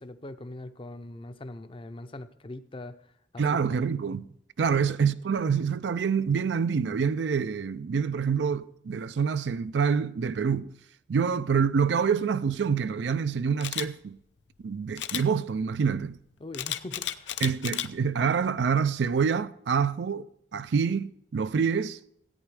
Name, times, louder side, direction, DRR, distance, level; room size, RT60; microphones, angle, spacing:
voice 1, 0.0-3.8 16.4-17.4, left 2 dB, 30° left, 0.6 m, -42 dB
voice 2, 3.4-4.3 4.6-10.7 11.1-14.2 14.6-16.2 17.4-20.3 20.5-22.0, right 6 dB, 75° right, 0.4 m, -26 dB
Camera, 13.6-13.9 15.0-15.2 16.5-17.9 18.4-18.6, left 11 dB, 80° left, 0.6 m, -32 dB
13.5 x 8.9 x 4.8 m
head